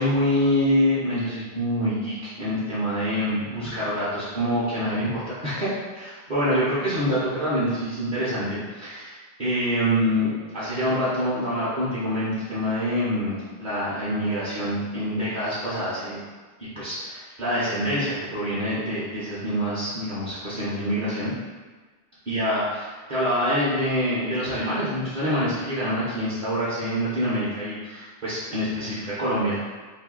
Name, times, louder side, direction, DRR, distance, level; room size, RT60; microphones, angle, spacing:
voice 1, 0.0-16.2 16.8-21.3 22.3-29.7, equal, 45° right, -10 dB, 0.9 m, -26 dB
2.7 x 2.6 x 3.7 m, 1.4 s
omnidirectional pair, 1.1 m